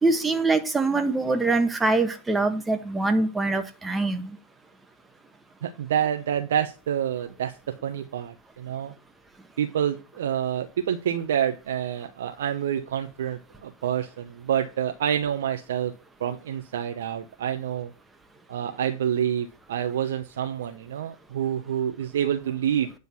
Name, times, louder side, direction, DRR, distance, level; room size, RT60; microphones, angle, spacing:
voice 1, 0.0-4.4, right 3 dB, 10° right, 1.4 m, -24 dB
voice 2, 5.6-8.9 9.6-15.9 16.2-17.9 18.5-22.9, right 9 dB, 75° right, 0.9 m, -28 dB
9.7 x 3.9 x 7.0 m
hypercardioid pair, 110°, 0 cm